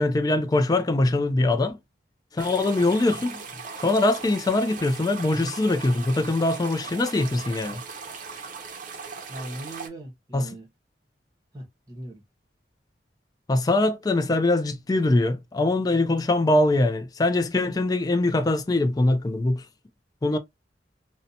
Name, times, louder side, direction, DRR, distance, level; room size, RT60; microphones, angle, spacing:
voice 1, 0.0-1.8 2.3-3.4 3.8-7.8 10.3-10.5 13.5-19.6 20.2-20.4, left 2 dB, 20° left, 0.3 m, -22 dB
sound 1, 2.4-9.9, right 5 dB, 45° right, 0.6 m, -39 dB
voice 2, 9.3-10.7 11.5-12.2, right 1 dB, 20° right, 0.9 m, -39 dB
2.7 x 2.1 x 2.6 m
head